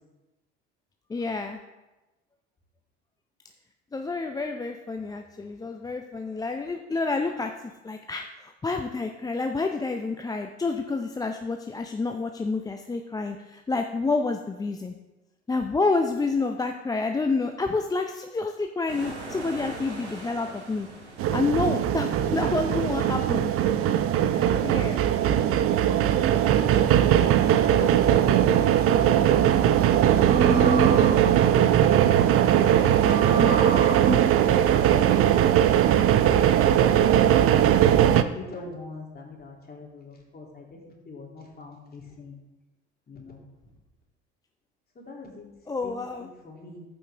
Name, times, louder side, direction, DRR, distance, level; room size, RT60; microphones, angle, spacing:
voice 1, 1.1-1.6 3.9-7.5 7.8-14.9 15.5-20.9 21.3-23.5 24.2-25.0 45.7-46.3, left 3 dB, 10° left, 5 dB, 0.5 m, -29 dB
sound 1, 18.9-24.0, right 2 dB, 75° right, 1.7 m, -42 dB
sound 2, 21.2-38.2, right 10 dB, 40° right, 0.6 m, -20 dB
voice 2, 22.1-22.5 25.2-25.5 27.3-29.6 29.9-32.5 34.0-36.8 37.3-42.4 43.1-43.4 45.0-45.4 45.8-46.9, left 3 dB, 25° left, -1 dB, 2.7 m, -42 dB
sound 3, 28.2-29.0 30.1-31.7 32.9-35.4, right 2 dB, 20° right, 1.1 m, -30 dB
14.0 x 5.4 x 3.4 m, 1.1 s
figure-of-eight pair, 60°, 34 cm